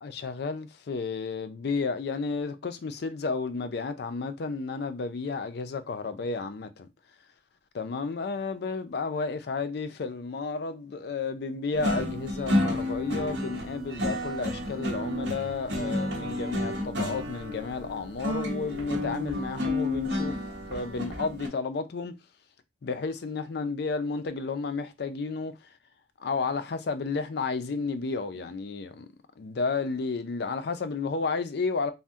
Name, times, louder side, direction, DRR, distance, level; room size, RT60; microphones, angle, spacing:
voice 1, 0.0-6.9 7.7-20.4 20.7-22.1 22.8-25.5 26.2-29.1 29.4-31.9, left 4 dB, 60° left, 0.4 m, -32 dB
sound 1, 11.7-21.5, left 1 dB, 70° right, 0.8 m, -31 dB
2.6 x 2.1 x 3.4 m
head